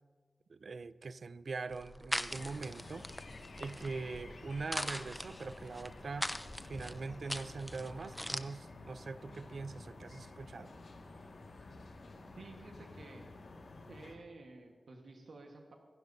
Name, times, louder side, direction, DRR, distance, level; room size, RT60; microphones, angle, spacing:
voice 1, 0.5-3.1 3.6-6.3 6.6-10.7, right 4 dB, 65° right, 15 dB, 0.4 m, -42 dB
sound 1, 1.7-8.4, equal, 5° left, 0.5 m, -42 dB
sound 2, 2.3-14.2, left 2 dB, 75° left, 1.7 m, -51 dB
voice 2, 12.3-13.3 13.9-15.7, right 3 dB, 80° right, 2 dB, 1.3 m, -52 dB
25.5 x 12.0 x 2.7 m, 1.4 s
wide cardioid pair, 110°, 0 cm